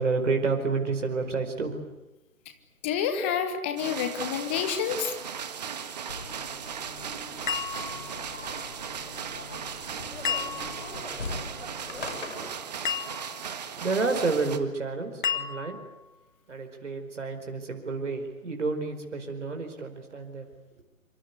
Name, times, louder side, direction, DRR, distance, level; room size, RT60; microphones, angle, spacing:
voice 1, 0.0-1.9 13.8-15.8 16.5-20.5, right 4 dB, 55° right, 4 dB, 4.7 m, -29 dB
voice 2, 2.8-5.1, left 8 dB, 10° left, 8 dB, 1.0 m, -28 dB
sound 1, 3.8-14.6, right 7 dB, 30° right, 1.6 m, -37 dB
sound 2, 6.1-12.6, left 3 dB, 55° left, 5.7 m, -41 dB
sound 3, 7.5-8.4 10.2-11.0 12.8-13.5 15.2-16.0, left 7 dB, 35° left, 1.6 m, -32 dB
26.0 x 26.0 x 8.3 m, 0.97 s
figure-of-eight pair, 145°, 43 cm